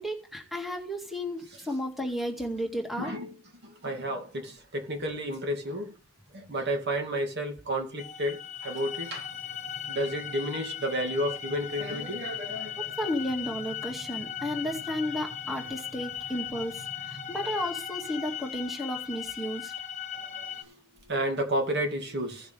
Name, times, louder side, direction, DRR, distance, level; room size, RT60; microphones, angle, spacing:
voice 1, 0.0-3.1 12.8-19.7, equal, ahead, 2.1 m, -33 dB
voice 2, 3.0-3.3 3.6-5.9 6.3-9.3 9.9-12.9 20.4-20.7 21.1-22.5, equal, 55° right, 2.5 m, -31 dB
sound 1, 8.0-20.6, left 9 dB, 35° left, 1.4 m, -38 dB
16.5 x 6.6 x 3.4 m
head